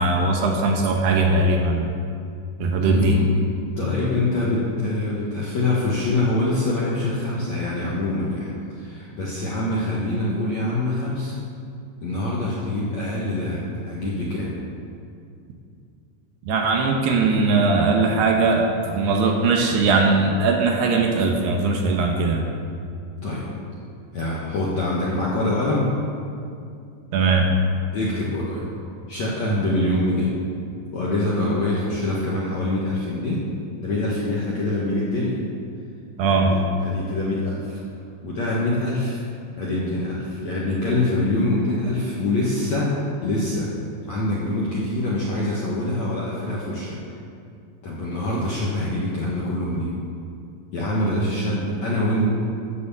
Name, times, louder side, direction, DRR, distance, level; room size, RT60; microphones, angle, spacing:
voice 1, 0.0-1.9 2.6-3.2 16.5-22.5 27.1-27.5 36.2-36.6, right 3 dB, 70° right, 1 dB, 2.8 m, -20 dB
voice 2, 2.8-3.5 3.8-8.5 8.7-11.3 12.0-14.5 23.2-23.5 24.1-25.9 27.9-28.6 29.1-30.3 30.9-33.4 33.8-35.4 36.5-37.8 38.2-39.2 39.6-43.0 43.2-43.7 44.1-47.0 47.8-50.0 50.7-52.3, left 1 dB, 60° left, -6 dB, 1.9 m, -24 dB
15.0 x 7.0 x 7.3 m, 2.5 s
omnidirectional pair, 5.4 m